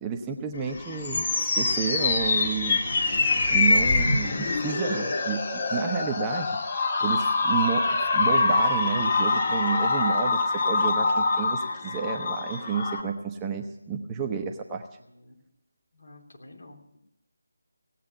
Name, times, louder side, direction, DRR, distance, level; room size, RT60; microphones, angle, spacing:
voice 1, 0.0-2.8 3.5-6.5 7.0-14.8, right 6 dB, 15° right, 3 dB, 0.8 m, -30 dB
sound 1, 0.6-13.0, left 3 dB, 35° left, 1.7 m, -25 dB
voice 2, 3.2-3.6 5.4-6.1 15.0-15.3 15.9-17.0, left 1 dB, 65° left, 2 dB, 3.3 m, -48 dB
17.5 x 8.5 x 7.0 m, 0.82 s
figure-of-eight pair, 160°, 0 cm